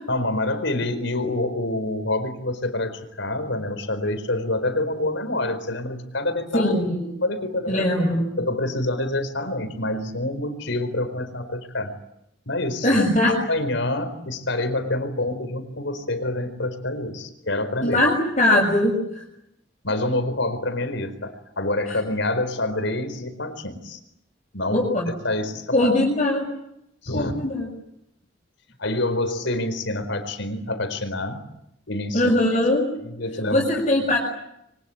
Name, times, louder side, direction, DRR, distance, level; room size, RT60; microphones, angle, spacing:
voice 1, 0.1-6.7 7.2-7.9 8.4-11.9 12.5-18.0 19.8-24.0 24.5-24.9 25.2-25.9 27.0-27.3 28.8-31.4 31.9-32.3 33.0-34.1, left 2 dB, 75° left, 9 dB, 4.6 m, -27 dB
voice 2, 6.5-7.1 7.7-8.2 12.8-13.3 17.8-18.9 24.7-25.1 25.7-26.4 27.1-27.7 32.1-32.8 33.5-34.2, left 1 dB, 35° left, -3 dB, 6.7 m, -20 dB
27.0 x 24.5 x 8.9 m, 0.81 s
head